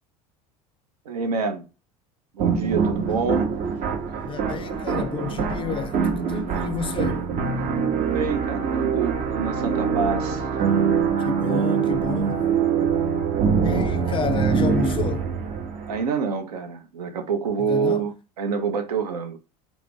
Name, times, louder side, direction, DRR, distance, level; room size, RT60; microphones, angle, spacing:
voice 1, 1.1-1.6 2.3-3.5 8.0-10.5 15.9-19.4, right 5 dB, 90° right, 0.6 m, -27 dB
sound 1, 2.4-16.1, right 6 dB, 45° right, 0.6 m, -24 dB
voice 2, 4.2-7.3 11.2-12.5 13.6-15.3 17.6-18.0, left 6 dB, 25° left, 0.3 m, -30 dB
2.4 x 2.0 x 3.6 m
hypercardioid pair, 80°, 19 cm